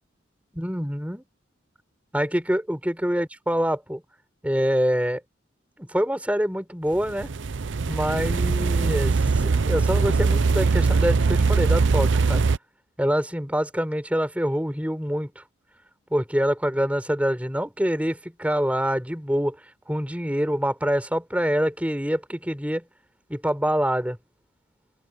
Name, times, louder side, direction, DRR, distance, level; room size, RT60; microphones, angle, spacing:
voice 1, 0.5-1.2 2.1-4.0 4.4-5.2 5.8-7.3 7.9-12.4 13.0-15.4 16.1-19.6 19.9-22.8 23.3-24.2, equal, 5° right, 5.4 m, -25 dB
sound 1, 7.0-12.6, right 4 dB, 70° right, 0.6 m, -21 dB
open air
head